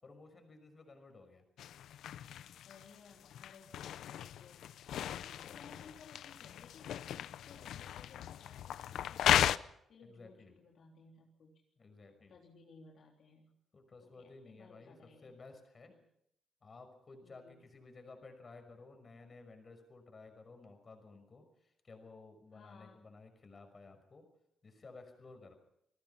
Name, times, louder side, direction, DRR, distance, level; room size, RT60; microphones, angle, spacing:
voice 1, 0.0-1.4 5.4-5.6 10.0-10.6 11.8-12.4 13.7-15.0 15.2-15.9 16.6-24.3 24.6-25.6, left 3 dB, 30° left, 6 dB, 5.8 m, -55 dB
sound 1, 1.6-9.6, left 10 dB, 75° left, 0.7 m, -36 dB
voice 2, 2.7-4.7 5.1-6.9 7.2-9.5 9.9-11.6 12.3-13.6 14.0-15.3 15.9-16.0 17.2-17.6 22.5-23.0, left 4 dB, 55° left, -1 dB, 3.5 m, -59 dB
28.5 x 19.5 x 5.8 m, 0.77 s
cardioid pair, 145°, 0 cm